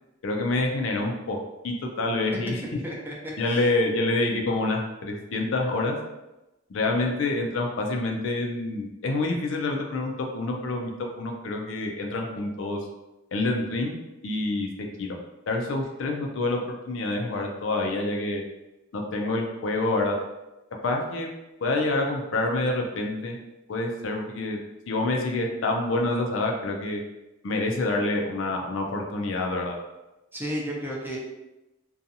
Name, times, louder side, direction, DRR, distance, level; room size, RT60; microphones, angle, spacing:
voice 1, 0.2-1.4 1.6-2.6 3.4-6.0 6.7-10.9 11.2-12.8 13.3-13.9 14.2-14.7 15.0-15.1 15.5-18.4 18.9-20.2 20.8-21.3 21.6-23.4 23.7-24.6 24.9-27.0 27.4-29.8, left 2 dB, 70° left, 2 dB, 0.4 m, -27 dB
voice 2, 2.8-3.1 3.5-3.6 30.3-31.2, equal, 10° right, -4 dB, 0.5 m, -32 dB
2.6 x 2.3 x 2.7 m, 0.98 s
head